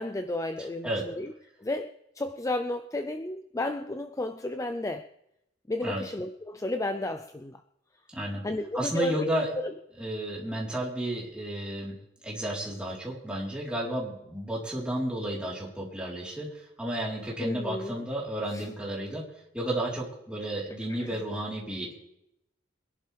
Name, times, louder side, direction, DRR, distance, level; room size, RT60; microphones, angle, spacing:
voice 1, 0.0-1.3 1.6-5.1 5.7-7.6 8.4-9.2 9.6-9.7 17.4-18.0 18.5-18.7 20.9-21.2, left 2 dB, 15° left, 8 dB, 0.5 m, -33 dB
voice 2, 8.1-8.5 8.7-9.5 10.0-19.3 19.5-22.0, right 1 dB, 5° right, -4 dB, 3.9 m, -32 dB
24.0 x 11.5 x 3.4 m, 0.82 s
head